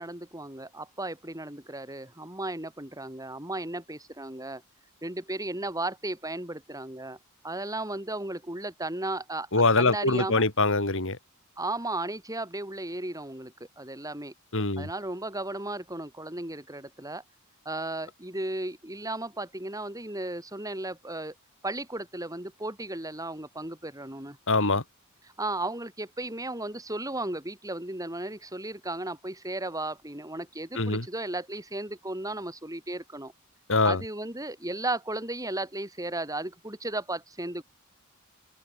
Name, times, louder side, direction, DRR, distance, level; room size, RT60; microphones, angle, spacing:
voice 1, 0.0-4.6 5.0-7.2 7.4-9.5 9.8-10.4 11.6-14.3 14.8-17.2 17.6-21.3 21.6-24.4 25.4-33.3 33.8-37.6, right 2 dB, 15° right, 7.9 m, -35 dB
voice 2, 9.5-11.2 14.5-14.9 24.5-24.8 30.8-31.0 33.7-34.0, left 3 dB, 60° left, 3.0 m, -23 dB
head